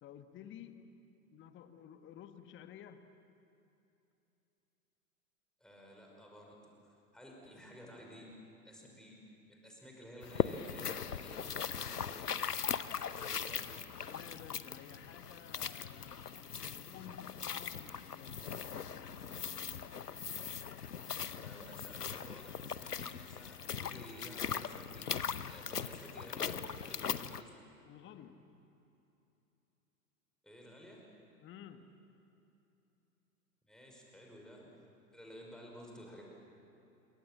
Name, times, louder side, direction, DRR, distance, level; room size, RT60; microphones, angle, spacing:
voice 1, 0.0-1.0 1.3-3.1 14.1-18.4 27.8-28.5 31.4-32.0, left 9 dB, 25° left, 9 dB, 1.5 m, -53 dB
voice 2, 5.6-6.7 7.1-8.4 8.6-9.1 9.5-12.9 13.2-13.9 21.2-25.1 25.4-27.5 30.4-31.0 33.7-34.7 35.1-36.2, equal, ahead, -1 dB, 5.6 m, -53 dB
sound 1, 10.2-27.4, left 7 dB, 80° left, 0.9 m, -40 dB
27.0 x 23.5 x 7.6 m, 2.9 s
figure-of-eight pair, 95°, 46 cm